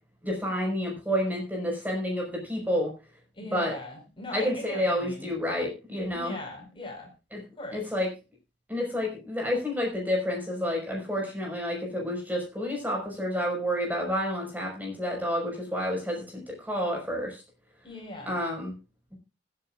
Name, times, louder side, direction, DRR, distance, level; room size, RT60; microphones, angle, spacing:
voice 1, 0.2-2.9 3.5-3.8 4.3-6.4 7.3-7.4 7.7-8.1 8.7-17.4 18.2-18.7, equal, 10° right, -1 dB, 5.2 m, -29 dB
voice 2, 3.3-5.3 6.1-7.1 7.6-7.8 17.8-18.4, left 1 dB, 25° left, 1 dB, 5.1 m, -39 dB
25.0 x 8.9 x 2.5 m, 0.30 s
head